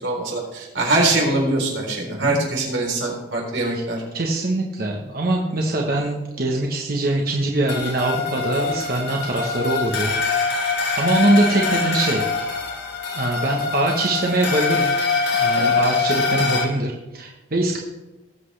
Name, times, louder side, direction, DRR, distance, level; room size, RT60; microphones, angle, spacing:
voice 1, 0.0-4.0 15.5-15.8, right 2 dB, 90° right, -1 dB, 3.8 m, -23 dB
voice 2, 2.1-2.4 3.7-3.8 4.1-10.1 10.5-10.6 10.9-12.2 13.2-14.9 15.3-17.8, right 2 dB, 50° right, 0 dB, 1.2 m, -23 dB
sound 1, 7.7-16.6, left 4 dB, 65° left, 2.0 m, -23 dB
19.0 x 7.7 x 3.3 m, 1.0 s
head